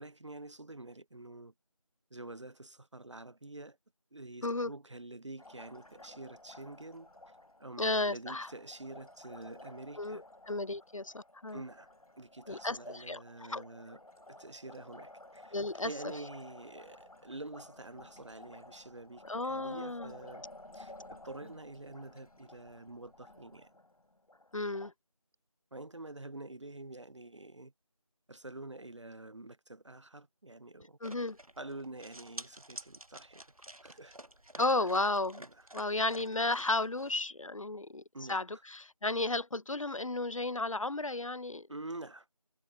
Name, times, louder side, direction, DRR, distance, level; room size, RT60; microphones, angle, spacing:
voice 1, 0.0-1.5 2.1-3.8 4.1-7.1 7.6-10.2 11.5-11.9 12.2-14.0 14.3-15.6 15.8-20.4 20.7-23.7 25.7-27.7 28.3-31.0 31.6-33.4 33.8-34.2 34.5-34.9 35.4-35.7 38.1-38.4 41.7-42.3, right 2 dB, 55° right, 0.4 m, -47 dB
Liquid, 5.4-24.9, left 1 dB, 90° left, 1.2 m, -54 dB
voice 2, 7.8-8.5 10.0-11.6 12.5-13.6 15.5-15.9 19.3-20.1 24.5-24.9 31.0-31.4 34.6-35.4 35.7-41.7, left 2 dB, 65° left, 0.5 m, -33 dB
sound 1, 31.0-37.2, right 1 dB, 80° right, 1.2 m, -51 dB
figure-of-eight pair, 175°, 18 cm